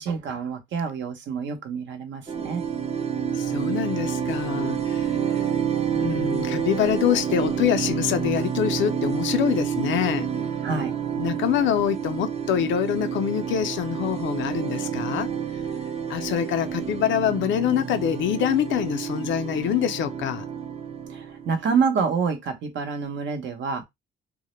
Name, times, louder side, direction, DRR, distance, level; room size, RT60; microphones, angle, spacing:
voice 1, 0.0-2.6 10.6-10.9 21.1-23.8, right 5 dB, 70° right, 0.7 m, -27 dB
sound 1, 2.3-21.8, right 7 dB, 30° right, 0.5 m, -29 dB
voice 2, 3.3-5.1 6.0-10.3 11.2-15.3 16.1-20.4, left 9 dB, 70° left, 0.4 m, -25 dB
2.1 x 2.0 x 3.0 m
cardioid pair, 90°, 20 cm